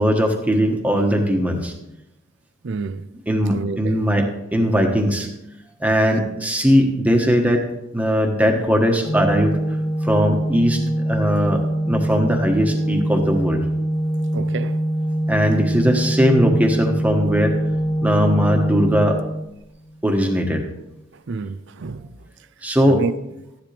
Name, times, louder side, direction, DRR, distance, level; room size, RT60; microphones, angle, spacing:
voice 1, 0.0-1.7 3.3-5.3 5.8-7.7 7.9-9.6 10.0-13.6 15.3-17.6 18.0-19.2 20.0-20.7 22.6-23.0, equal, 5° right, 1.3 m, -19 dB
voice 2, 2.6-3.1 3.5-4.1 14.3-14.8 21.3-22.1 22.9-23.1, right 4 dB, 60° right, 0.5 m, -28 dB
Organ, 9.0-19.9, right 1 dB, 30° left, 0.5 m, -23 dB
14.0 x 10.5 x 3.4 m
head